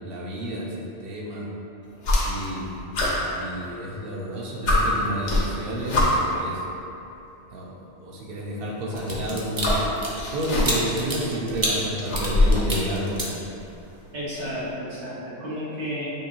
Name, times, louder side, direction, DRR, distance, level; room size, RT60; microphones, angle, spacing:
voice 1, 0.0-1.5 2.2-2.9 3.3-6.7 7.5-9.8 10.3-13.3, right 1 dB, 60° right, -3 dB, 0.9 m, -30 dB
sound 1, 2.0-2.6 2.9-4.0 4.3-4.4 4.7-6.4 7.5-7.6 8.9-11.0 11.3-12.8, left 1 dB, 90° left, 1.2 m, -24 dB
sound 2, 8.9-13.9 14.3-14.6, right 1 dB, 25° right, 0.5 m, -29 dB
voice 2, 14.1-16.1, equal, 80° right, -8 dB, 1.5 m, -32 dB
6.7 x 2.7 x 2.8 m, 2.9 s
omnidirectional pair, 1.1 m